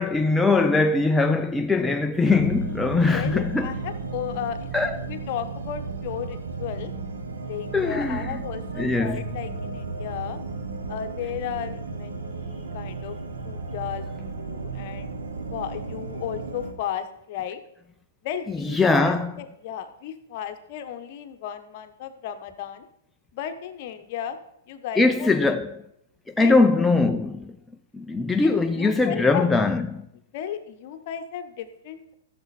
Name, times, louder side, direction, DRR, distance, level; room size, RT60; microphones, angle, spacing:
voice 1, 0.0-3.7 4.7-5.0 7.7-8.4 8.8-9.2 18.6-19.3 25.0-25.7 26.4-27.5 27.9-30.1, left 3 dB, 5° left, 0.4 m, -21 dB
sound 1, 2.2-16.7, right 4 dB, 90° right, 1.3 m, -34 dB
voice 2, 3.1-4.7 4.9-6.9 7.4-10.4 10.9-13.2 13.4-15.2 15.5-17.6 18.2-22.8 23.3-24.4 24.7-25.3 26.4-26.5 28.4-29.5 30.3-32.1, left 9 dB, 50° left, 1.1 m, -34 dB
12.5 x 6.9 x 4.2 m
hypercardioid pair, 130°, 0 cm